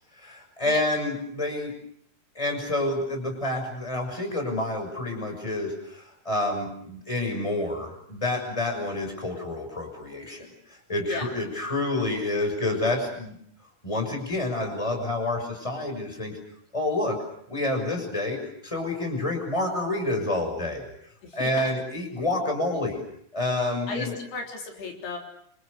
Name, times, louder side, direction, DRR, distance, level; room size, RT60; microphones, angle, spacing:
voice 1, 0.2-1.7 2.3-13.4 13.8-16.4 16.7-17.2 17.5-18.4 18.6-20.8 21.3-23.0 23.3-24.2, left 2 dB, 5° left, 4 dB, 6.3 m, -28 dB
voice 2, 21.2-21.7 23.9-25.2, left 4 dB, 75° left, 2 dB, 5.8 m, -35 dB
28.5 x 27.0 x 6.7 m, 0.70 s
omnidirectional pair, 4.7 m